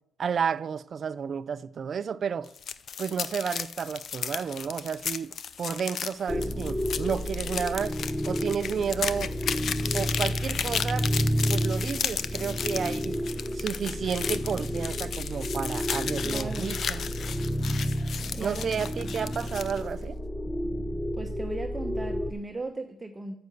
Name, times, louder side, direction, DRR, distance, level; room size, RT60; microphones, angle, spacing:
voice 1, 0.2-2.5 3.0-9.4 9.9-11.1 11.5-17.0 18.4-20.2, right 7 dB, 50° right, 0.5 m, -32 dB
sound 1, 2.4-19.8, left 7 dB, 55° left, 0.6 m, -34 dB
sound 2, 6.3-22.3, equal, 15° left, 0.8 m, -31 dB
voice 2, 16.2-16.7 18.3-18.9 21.2-23.4, right 2 dB, 20° right, 0.9 m, -37 dB
9.4 x 6.8 x 8.1 m
cardioid pair, 90°, 0 cm